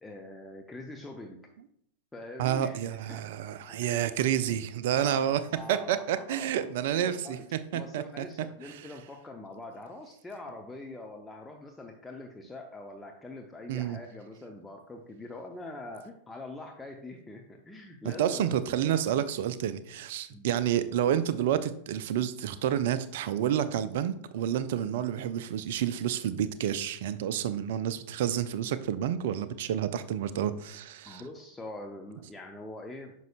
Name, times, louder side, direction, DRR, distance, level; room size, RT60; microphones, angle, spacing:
voice 1, 0.0-1.4 2.1-3.3 3.8-3.9 4.4-4.5 5.0-6.7 6.9-7.4 7.7-19.0 20.3-20.5 31.1-33.1, left 2 dB, 10° left, 2 dB, 0.7 m, -44 dB
voice 2, 2.4-5.4 5.7-8.3 8.6-8.9 13.7-14.0 18.0-31.2, right 10 dB, 55° right, 13 dB, 0.5 m, -29 dB
9.2 x 6.2 x 2.4 m, 0.69 s
figure-of-eight pair, 90°, 0 cm